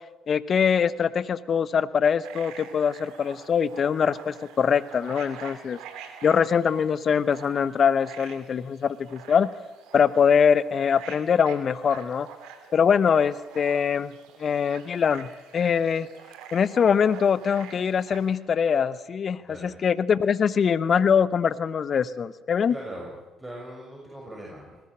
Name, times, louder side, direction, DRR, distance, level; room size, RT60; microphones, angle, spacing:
voice 1, 0.3-5.8 6.2-9.5 9.9-12.3 12.7-14.1 14.4-16.1 16.5-22.7, left 7 dB, 50° left, 17 dB, 1.0 m, -23 dB
sound 1, 2.2-18.3, right 7 dB, 75° right, 2.8 m, -46 dB
voice 2, 19.4-19.9 22.7-23.1 23.4-24.8, right 1 dB, 15° right, -2 dB, 6.6 m, -40 dB
20.0 x 16.5 x 8.8 m, 1.1 s
hypercardioid pair, 55°, 0 cm